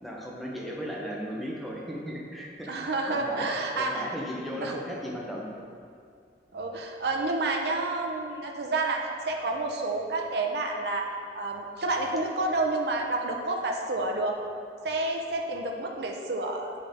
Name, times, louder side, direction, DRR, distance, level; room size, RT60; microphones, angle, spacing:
voice 1, 0.0-2.8 3.1-3.5 3.7-5.5, equal, ahead, -4 dB, 0.9 m, -36 dB
voice 2, 2.7-4.1 4.6-4.7 6.5-11.1 11.3-14.4 14.8-16.7, right 2 dB, 60° right, 1 dB, 0.6 m, -29 dB
7.8 x 5.5 x 3.6 m, 2.3 s
head